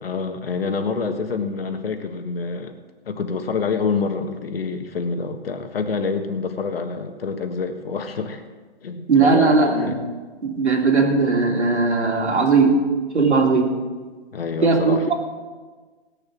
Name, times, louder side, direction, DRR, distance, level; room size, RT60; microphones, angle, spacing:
voice 1, 0.0-2.7 3.0-8.4 8.8-10.0 14.3-15.1, left 4 dB, 60° left, 6 dB, 1.6 m, -27 dB
voice 2, 9.1-10.0 10.4-12.8 13.1-13.8 14.6-15.1, right 4 dB, 85° right, 0 dB, 3.0 m, -18 dB
18.5 x 7.0 x 6.2 m, 1.4 s
hypercardioid pair, 165°, 33 cm